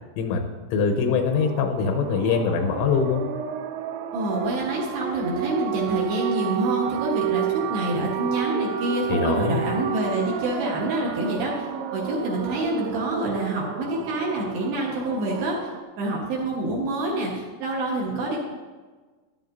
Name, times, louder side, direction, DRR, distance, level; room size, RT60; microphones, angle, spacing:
voice 1, 0.7-3.2 9.1-9.7, left 5 dB, 90° left, 4 dB, 3.3 m, -23 dB
sound 1, 1.0-15.8, right 10 dB, 90° right, 3.2 m, -31 dB
voice 2, 4.1-15.7 16.0-18.4, right 1 dB, 65° right, -2 dB, 3.0 m, -27 dB
13.5 x 11.5 x 2.7 m, 1.3 s
omnidirectional pair, 5.7 m